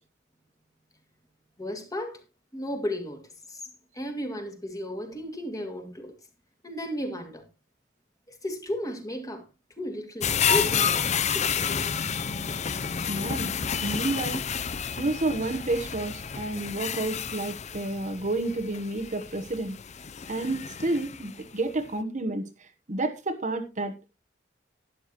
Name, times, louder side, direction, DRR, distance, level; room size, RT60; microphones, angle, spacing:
voice 1, 1.6-2.2 2.5-3.6 3.9-6.1 6.6-7.5 8.3-9.4 9.8-11.0 11.3-11.8, left 1 dB, 20° left, 2.2 m, -34 dB
sound 1, 10.2-21.4 21.9-22.0, left 7 dB, 40° left, 0.6 m, -30 dB
voice 2, 13.1-13.5 13.8-14.4 15.0-19.8 20.3-24.1, right 2 dB, 40° right, 1.1 m, -30 dB
12.0 x 10.5 x 3.0 m
head